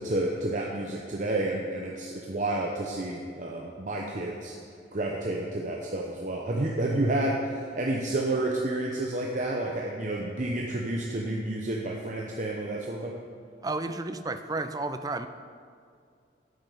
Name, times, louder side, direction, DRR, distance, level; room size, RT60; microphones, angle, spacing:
voice 1, 0.0-4.5 4.9-13.1, right 2 dB, 40° right, -1 dB, 0.8 m, -30 dB
voice 2, 13.6-15.3, right 2 dB, 20° right, 9 dB, 0.4 m, -32 dB
9.5 x 8.9 x 5.5 m, 2.3 s
head